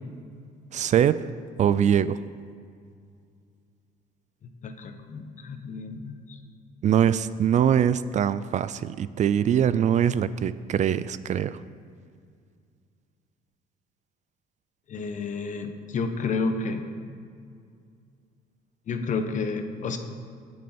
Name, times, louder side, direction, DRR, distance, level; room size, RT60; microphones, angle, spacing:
voice 1, 0.7-1.1 1.6-2.2 6.8-11.6, right 9 dB, 45° right, 15 dB, 0.4 m, -22 dB
voice 2, 4.6-6.4 14.9-16.8 18.9-20.0, left 4 dB, 50° left, 7 dB, 1.1 m, -30 dB
18.5 x 6.4 x 4.4 m, 2.3 s
cardioid pair, 110°, 17 cm